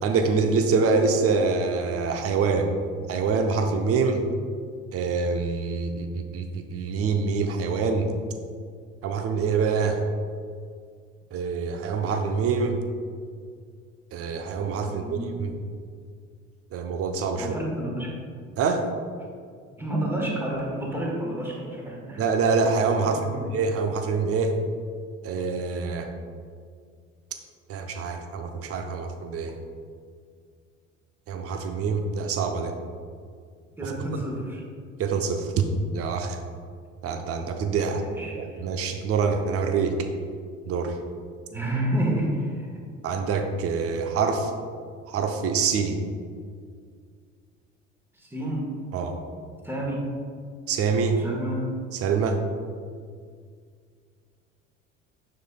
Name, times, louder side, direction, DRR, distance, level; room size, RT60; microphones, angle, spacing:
voice 1, 0.0-2.7 3.1-4.2 4.9-8.1 9.0-10.0 11.3-12.8 14.1-15.5 16.7-17.5 18.6-18.9 22.2-24.6 25.2-26.1 27.7-29.6 31.3-32.7 33.8-33.9 35.0-35.6 35.9-36.4 37.0-38.0 38.3-39.9 40.7-41.0 43.0-44.5 45.1-46.0 48.9-49.2 50.7-51.2 51.9-52.4, right 5 dB, 35° right, 5 dB, 0.7 m, -25 dB
voice 2, 14.9-15.4 17.4-18.2 19.8-22.2 23.0-23.4 33.8-34.6 37.9-38.6 41.5-42.7 48.2-48.7 49.6-50.0 51.1-51.6, right 1 dB, 5° right, -3 dB, 1.4 m, -30 dB
6.6 x 6.5 x 2.3 m, 2.1 s
figure-of-eight pair, 60°, 38 cm